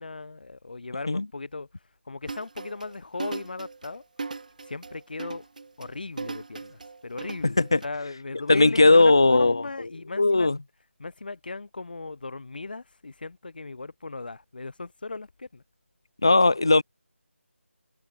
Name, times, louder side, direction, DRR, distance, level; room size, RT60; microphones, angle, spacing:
voice 1, 0.0-1.7 2.1-4.0 4.7-5.5 5.8-10.5 11.0-15.6, left 3 dB, 40° left, 1.1 m, -37 dB
sound 1, 2.3-7.9, right 4 dB, 35° right, 2.2 m, -38 dB
voice 2, 7.4-7.8 8.5-9.6 10.2-10.6 16.2-16.8, left 3 dB, 20° left, 0.3 m, -18 dB
figure-of-eight pair, 175°, 7 cm